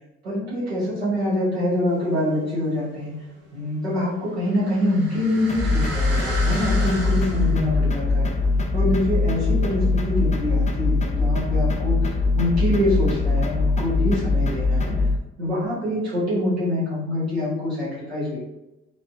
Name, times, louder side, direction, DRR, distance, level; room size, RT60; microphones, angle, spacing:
voice 1, 0.2-3.1 3.5-8.3 8.7-14.9 15.4-18.4, left 1 dB, 90° right, -9 dB, 1.1 m, -25 dB
sound 1, 1.9-2.7 3.0-10.1 10.6-10.7, right 1 dB, 50° right, 0.9 m, -36 dB
sound 2, 5.5-15.2, left 3 dB, 20° left, 0.5 m, -22 dB
3.1 x 3.0 x 2.8 m, 0.96 s
figure-of-eight pair, 40°, 31 cm